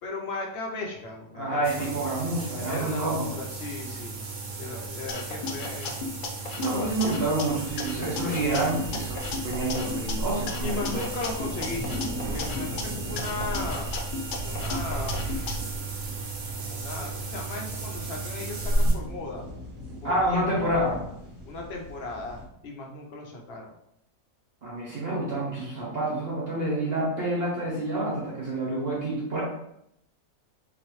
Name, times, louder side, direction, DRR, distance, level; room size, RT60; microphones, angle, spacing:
voice 1, 0.0-1.9 2.7-4.2 4.6-6.0 6.8-7.2 10.6-11.8 12.3-13.9 14.3-15.6 16.5-19.5 20.0-20.5 21.5-23.7, left 3 dB, 55° left, 0 dB, 0.8 m, -36 dB
voice 2, 1.3-3.3 6.3-11.1 20.0-21.0 24.6-29.4, right 1 dB, 50° right, -4 dB, 1.1 m, -28 dB
sound 1, 1.6-18.9, right 2 dB, 80° right, 1.2 m, -33 dB
sound 2, 5.1-7.4 7.8-10.1 10.5-12.8 13.2-15.5, left 4 dB, 80° left, 0.4 m, -35 dB
sound 3, 6.7-22.4, equal, 25° right, 1.0 m, -41 dB
3.9 x 3.0 x 3.1 m, 0.77 s
omnidirectional pair, 1.5 m